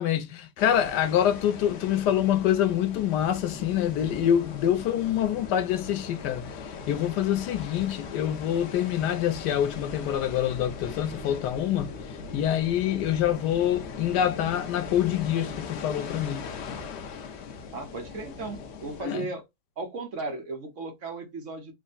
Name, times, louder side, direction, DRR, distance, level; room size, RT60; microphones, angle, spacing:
voice 1, 0.0-6.5 6.9-11.9 12.3-16.5 19.0-19.3, left 10 dB, 85° left, 1.2 m, -26 dB
sound 1, 0.6-19.0, left 5 dB, 70° left, 0.6 m, -39 dB
voice 2, 17.7-19.4 19.8-21.7, right 3 dB, 55° right, 1.1 m, -36 dB
3.5 x 2.0 x 3.8 m
omnidirectional pair, 1.8 m